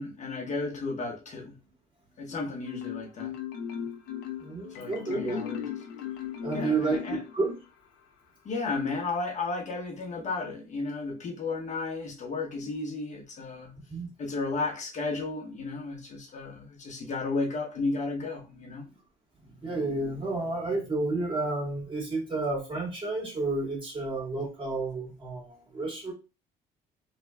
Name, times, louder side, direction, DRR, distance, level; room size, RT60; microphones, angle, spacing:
voice 1, 0.0-1.6 2.2-3.3 4.7-5.6 6.5-7.2 8.4-13.7 14.2-18.8, left 3 dB, 45° left, 0.9 m, -33 dB
Marimba xylophone, 2.6-7.8, left 9 dB, 80° left, 0.6 m, -37 dB
voice 2, 4.4-5.4 6.4-7.0 7.3-7.6 13.9-14.1 19.6-26.1, right 3 dB, 30° right, 1.8 m, -31 dB
3.2 x 2.3 x 3.3 m
cardioid pair, 110°, 17 cm